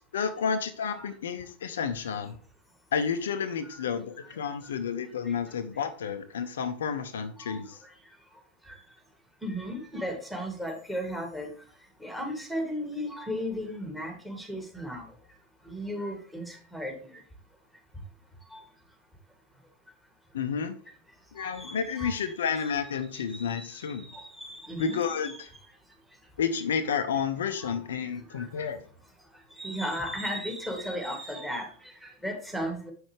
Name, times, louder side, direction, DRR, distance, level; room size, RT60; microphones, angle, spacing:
voice 1, 0.0-2.4 2.9-7.8 20.3-20.7 21.3-24.1 24.8-25.5 26.4-28.8, left 6 dB, 60° left, 9 dB, 0.6 m, -31 dB
voice 2, 9.4-11.5 12.0-15.1 15.7-17.0 18.5-18.6 21.4-22.7 23.1-25.4 27.6-27.8 28.3-28.7 29.6-32.9, equal, ahead, 2 dB, 2.3 m, -36 dB
7.9 x 6.2 x 3.2 m, 0.43 s
figure-of-eight pair, 90°, 0 cm